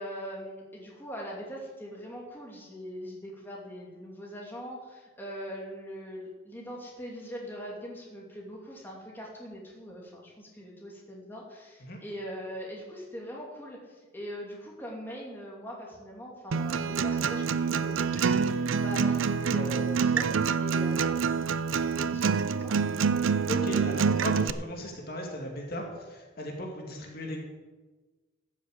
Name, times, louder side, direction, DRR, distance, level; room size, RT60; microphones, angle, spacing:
voice 1, 0.0-22.3 22.6-22.7, equal, 10° left, -3 dB, 2.8 m, -42 dB
Acoustic guitar, 16.5-24.5, right 5 dB, 80° right, 0.5 m, -26 dB
voice 2, 23.5-27.4, left 1 dB, 50° left, 0 dB, 2.3 m, -36 dB
13.5 x 7.4 x 8.1 m, 1.3 s
head